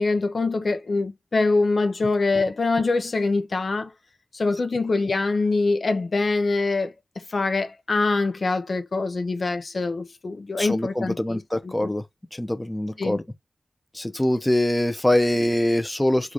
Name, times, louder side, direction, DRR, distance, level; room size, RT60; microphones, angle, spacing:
voice 1, 0.0-3.9 4.3-11.9 13.0-13.2, left 3 dB, 65° left, 0.6 m, -24 dB
voice 2, 10.6-12.0 12.3-13.2 13.9-16.3, left 1 dB, 15° left, 0.6 m, -23 dB
3.7 x 2.4 x 3.0 m
cardioid pair, 50°, 0 cm